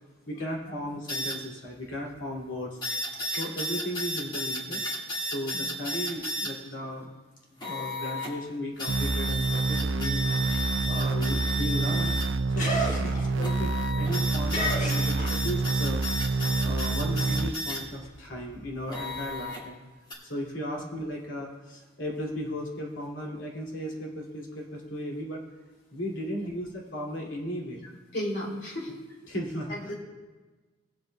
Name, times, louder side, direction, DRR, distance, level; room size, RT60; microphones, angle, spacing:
voice 1, 0.3-2.8 3.4-4.8 5.2-7.1 7.7-10.2 10.6-12.2 12.5-19.8 20.2-25.4 25.9-27.9 29.3-29.9, equal, 90° left, -1 dB, 2.3 m, -36 dB
sound 1, 1.1-1.4 2.8-6.5 7.6-8.3 8.8-12.3 13.4-17.8 18.9-19.6 20.1-20.2, equal, 25° left, 1.7 m, -33 dB
sound 2, 8.9-17.5, right 3 dB, 90° right, 0.5 m, -27 dB
sound 3, 12.4-15.8 16.1-19.4, equal, 45° left, 1.5 m, -35 dB
voice 2, 28.1-28.9 29.7-29.9, equal, 60° left, -2 dB, 2.7 m, -34 dB
19.5 x 7.9 x 2.2 m, 1.3 s
head